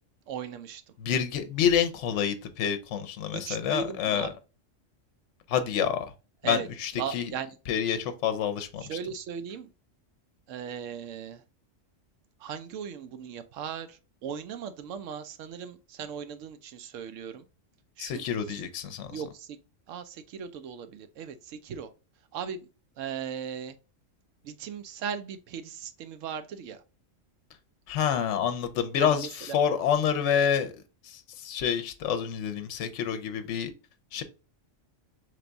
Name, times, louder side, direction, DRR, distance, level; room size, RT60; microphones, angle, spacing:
voice 1, 0.3-0.8 3.3-4.3 6.4-7.5 8.8-9.7 10.5-11.4 12.4-17.4 18.0-18.6 19.1-19.6 19.9-21.9 22.3-22.7 23.0-23.8 24.4-26.8 29.0-29.6, right 7 dB, 80° right, 0.9 m, -38 dB
voice 2, 1.0-4.3 5.5-6.1 6.4-7.3 7.7-8.8 18.0-19.2 27.9-30.7 31.0-33.7 34.1-34.2, left 8 dB, 75° left, 0.9 m, -28 dB
3.4 x 3.3 x 3.8 m
omnidirectional pair, 1.3 m